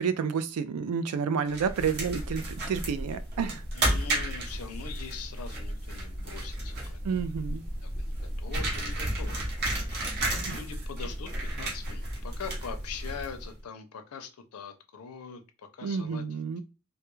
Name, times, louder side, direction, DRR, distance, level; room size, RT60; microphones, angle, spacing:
voice 1, 0.0-3.6 7.0-7.6 10.4-10.6 15.8-16.6, right 6 dB, 90° right, 0.4 m, -30 dB
sound 1, 1.5-13.5, right 1 dB, 45° right, 0.7 m, -33 dB
voice 2, 3.7-7.0 7.8-9.4 9.9-15.4 15.7-16.2, left 6 dB, 85° left, 0.5 m, -42 dB
2.2 x 2.0 x 3.0 m
head